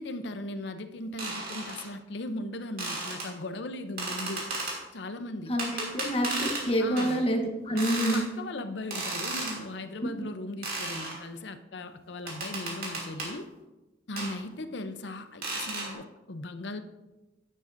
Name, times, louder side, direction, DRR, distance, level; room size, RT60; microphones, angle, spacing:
voice 1, 0.0-4.5 4.9-5.5 6.8-7.2 7.7-13.5 14.1-16.8, left 1 dB, 65° left, 10 dB, 0.7 m, -38 dB
sound 1, 1.2-1.8 2.8-3.3 4.0-4.8 5.6-6.7 7.0-7.1 7.8-8.2 8.9-9.6 10.6-11.2 12.3-13.3 14.2-14.3 15.4-15.9, right 2 dB, 50° right, 2.7 m, -34 dB
voice 2, 5.5-8.2 10.0-10.3, equal, 30° left, 1 dB, 1.1 m, -28 dB
11.5 x 9.9 x 2.6 m, 1.1 s
head